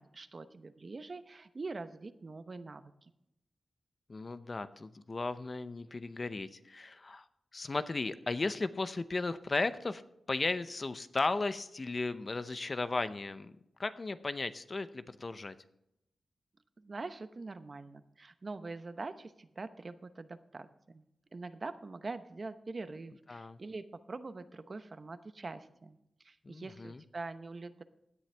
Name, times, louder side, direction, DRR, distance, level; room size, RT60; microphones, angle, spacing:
voice 1, 0.0-3.1 16.8-21.0 21.3-26.0 26.2-27.8, right 3 dB, 45° right, 11 dB, 0.8 m, -44 dB
voice 2, 4.1-7.2 7.5-10.0 10.3-13.5 13.8-15.5 23.3-23.6 26.4-27.0, left 3 dB, 40° left, 12 dB, 0.6 m, -35 dB
16.5 x 10.5 x 3.4 m, 0.83 s
wide cardioid pair, 95°, 0 cm